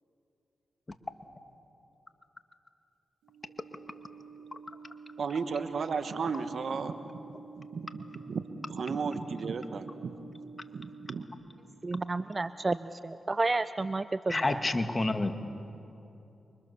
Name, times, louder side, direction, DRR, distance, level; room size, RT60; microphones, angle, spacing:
sound 1, 3.2-11.3, right 4 dB, 90° right, 1.9 m, -49 dB
voice 1, 5.2-7.0 7.6-10.1 10.7-11.2, right 5 dB, 65° right, 1.4 m, -34 dB
voice 2, 11.8-14.6, right 3 dB, 35° right, 0.6 m, -31 dB
voice 3, 14.3-15.4, left 2 dB, 30° left, 2.1 m, -29 dB
29.0 x 24.5 x 7.1 m
supercardioid pair, 45°, 0 cm